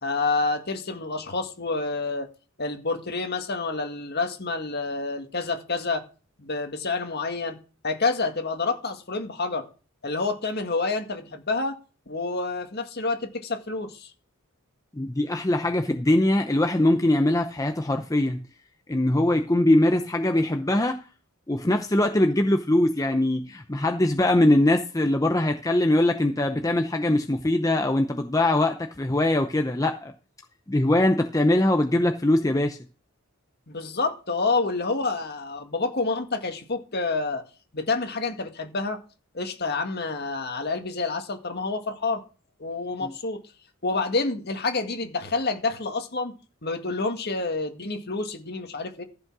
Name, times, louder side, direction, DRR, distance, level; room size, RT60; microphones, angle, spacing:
voice 1, 0.0-2.3 2.6-6.0 6.4-7.6 7.8-9.7 10.0-11.8 12.1-14.1 33.7-37.4 37.7-39.0 39.3-42.2 42.6-43.4 43.8-46.3 46.6-49.0, left 3 dB, 50° left, 1.8 m, -28 dB
voice 2, 14.9-18.4 18.9-21.0 21.5-30.1 30.7-32.8 43.0-43.1, left 1 dB, 15° left, 0.7 m, -22 dB
14.5 x 5.4 x 6.1 m
head